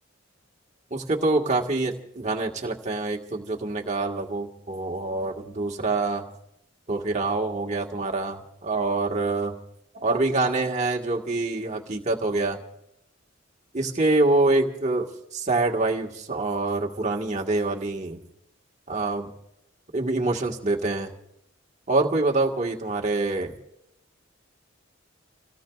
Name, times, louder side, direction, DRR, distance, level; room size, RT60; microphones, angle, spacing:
voice 1, 0.9-6.3 6.9-9.6 9.9-12.6 13.7-18.2 18.9-19.3 19.9-21.1 21.9-23.6, right 2 dB, 35° right, 1 dB, 1.5 m, -25 dB
30.0 x 17.0 x 2.4 m, 0.80 s
head